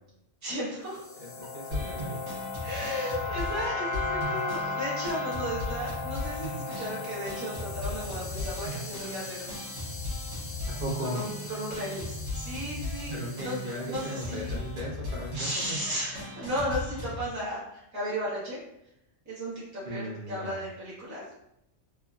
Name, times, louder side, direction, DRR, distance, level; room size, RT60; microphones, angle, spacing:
voice 1, 0.4-1.0 2.6-9.5 11.1-13.1 13.4-13.6 13.9-14.5 15.3-18.6 19.2-21.2, equal, 15° right, -9 dB, 1.0 m, -34 dB
sound 1, 0.9-14.3, left 3 dB, 55° left, 0.7 m, -37 dB
voice 2, 1.2-2.2 10.7-11.2 13.1-15.8 19.8-20.6, equal, 45° right, -4 dB, 0.9 m, -37 dB
sound 2, 1.7-17.3, left 1 dB, 65° right, 1.2 m, -37 dB
3.3 x 2.1 x 2.3 m, 0.81 s
omnidirectional pair, 1.3 m